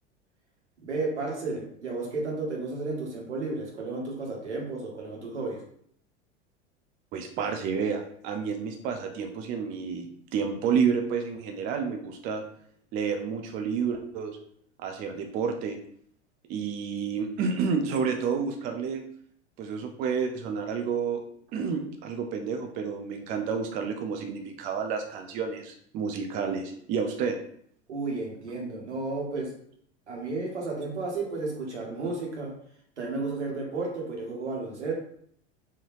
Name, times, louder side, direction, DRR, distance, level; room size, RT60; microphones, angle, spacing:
voice 1, 0.8-5.6 27.9-29.5 30.1-32.5 33.0-34.9, right 3 dB, 75° right, -1 dB, 1.3 m, -32 dB
voice 2, 7.1-12.4 12.9-14.4 14.8-15.8 16.5-19.0 19.6-21.2 21.5-27.4, right 6 dB, 25° right, 4 dB, 0.4 m, -30 dB
3.8 x 2.7 x 3.1 m, 0.64 s
figure-of-eight pair, 80°, 35 cm